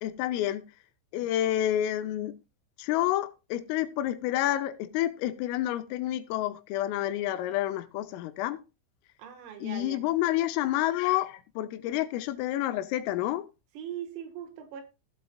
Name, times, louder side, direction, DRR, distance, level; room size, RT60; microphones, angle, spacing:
voice 1, 0.0-0.6 1.1-2.4 2.8-8.6 9.6-13.5, left 13 dB, 85° left, 3.3 m, -29 dB
voice 2, 9.2-10.0 13.8-14.8, right 10 dB, 85° right, 4.3 m, -40 dB
16.5 x 7.8 x 2.3 m
omnidirectional pair, 5.8 m